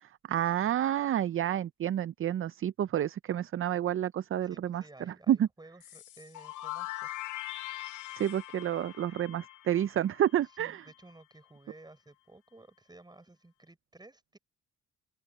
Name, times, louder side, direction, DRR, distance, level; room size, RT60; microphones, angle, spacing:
voice 1, 0.0-5.5 8.2-10.8, right 11 dB, 45° right, 0.5 m, -30 dB
voice 2, 4.4-7.1 10.6-14.4, right 2 dB, 15° right, 6.9 m, -54 dB
sound 1, 5.8-10.6, left 15 dB, 80° left, 1.0 m, -42 dB
open air
cardioid pair, 90°, 30 cm